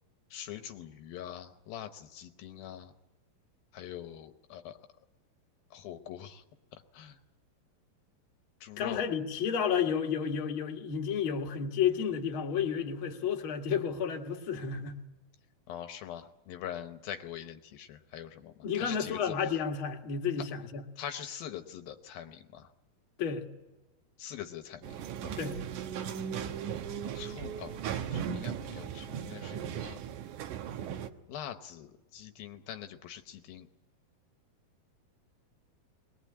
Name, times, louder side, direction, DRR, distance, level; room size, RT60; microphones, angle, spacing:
voice 1, 0.3-2.9 3.7-4.8 5.7-6.4 6.9-7.2 8.6-9.1 15.7-19.3 21.0-22.7 24.2-24.9 25.2-25.3 27.1-30.0 31.3-33.7, left 10 dB, 75° left, 8 dB, 2.6 m, -43 dB
voice 2, 8.8-15.0 18.6-20.9 23.2-23.5 25.4-25.6, left 7 dB, 45° left, 2 dB, 2.0 m, -31 dB
sound 1, 24.8-31.1, right 8 dB, 70° right, 2.1 m, -37 dB
22.0 x 20.0 x 8.6 m, 1.0 s
omnidirectional pair, 4.4 m